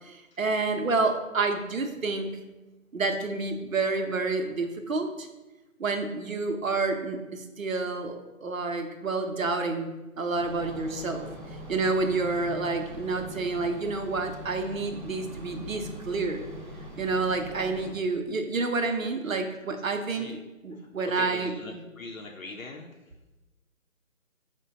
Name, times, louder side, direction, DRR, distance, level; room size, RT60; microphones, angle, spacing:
voice 1, 0.0-2.3 2.9-5.3 5.8-11.2 11.7-16.5 17.0-20.3 20.6-21.5, right 3 dB, 70° right, 5 dB, 0.7 m, -29 dB
sound 1, 10.3-17.9, equal, 35° right, 0.6 m, -42 dB
voice 2, 20.7-23.0, left 3 dB, 70° left, 1 dB, 0.6 m, -41 dB
4.4 x 2.2 x 4.7 m, 1.1 s
figure-of-eight pair, 160°, 42 cm